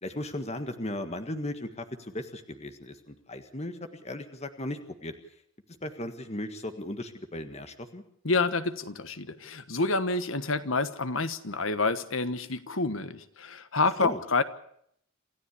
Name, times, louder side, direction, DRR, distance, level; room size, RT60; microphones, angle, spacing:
voice 1, 0.0-5.1 5.8-8.0 14.0-14.2, left 1 dB, 30° left, 8 dB, 1.7 m, -36 dB
voice 2, 8.2-14.4, left 3 dB, 70° left, 12 dB, 1.4 m, -28 dB
27.5 x 14.0 x 8.4 m, 0.69 s
head